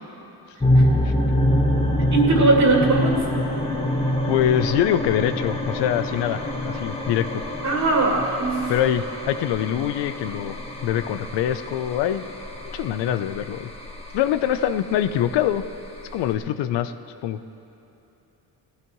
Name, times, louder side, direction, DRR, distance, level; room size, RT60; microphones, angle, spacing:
sound 1, 0.6-16.3, left 1 dB, 15° left, 1.6 m, -26 dB
voice 1, 0.6-0.9 2.1-3.2 7.6-8.7, right 2 dB, 45° right, -2 dB, 2.5 m, -20 dB
voice 2, 4.3-7.4 8.7-10.6 10.8-12.2 12.7-13.7 14.1-15.6 16.1-16.9 17.2-17.4, left 10 dB, 85° left, 11 dB, 0.7 m, -24 dB
18.5 x 14.5 x 3.1 m, 2.9 s
cardioid pair, 90°, 41 cm